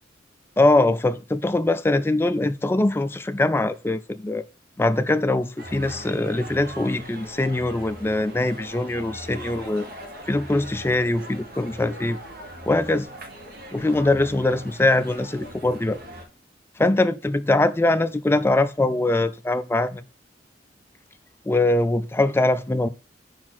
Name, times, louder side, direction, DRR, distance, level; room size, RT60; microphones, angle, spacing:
voice 1, 0.6-4.4 4.8-9.9 10.3-12.2 12.7-13.1 13.7-16.0 16.8-20.0 21.5-22.9, left 2 dB, 15° left, 0.3 m, -22 dB
sound 1, 5.6-16.2, equal, 55° right, 1.3 m, -40 dB
4.7 x 4.5 x 6.0 m
head